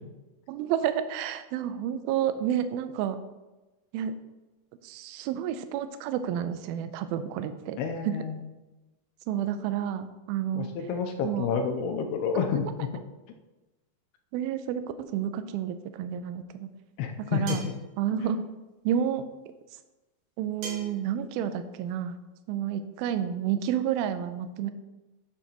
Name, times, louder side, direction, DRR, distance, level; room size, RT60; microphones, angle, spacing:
voice 1, 0.5-3.2 3.9-4.1 4.8-8.2 9.3-10.7 11.2-11.5 14.3-16.7 17.2-17.7 18.0-18.5 18.9-19.3 20.4-22.2 22.5-24.7, right 9 dB, 85° right, 10 dB, 2.1 m, -30 dB
voice 2, 7.8-8.4 10.5-12.9 17.0-17.4, left 6 dB, 80° left, 4 dB, 2.6 m, -29 dB
sound 1, 17.5-17.8 20.6-21.0, right 3 dB, 50° right, 3.2 m, -38 dB
11.5 x 6.4 x 3.0 m, 1.1 s
omnidirectional pair, 4.9 m